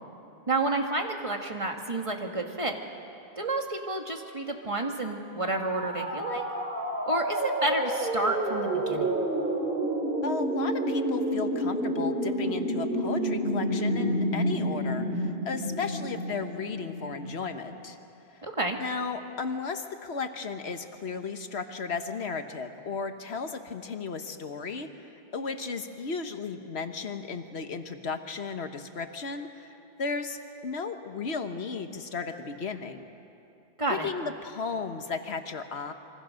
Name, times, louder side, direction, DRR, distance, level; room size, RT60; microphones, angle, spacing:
voice 1, 0.5-2.8 3.4-6.4 7.1-9.1 18.4-18.8 33.8-34.1, right 2 dB, 30° right, 3 dB, 1.8 m, -30 dB
sound 1, 5.5-17.3, right 1 dB, 60° right, 2.9 m, -29 dB
voice 2, 10.2-18.0 18.3-18.4 18.8-33.0 33.9-35.9, left 4 dB, 85° left, 7 dB, 1.5 m, -35 dB
26.0 x 24.0 x 6.5 m, 2.8 s
omnidirectional pair, 1.1 m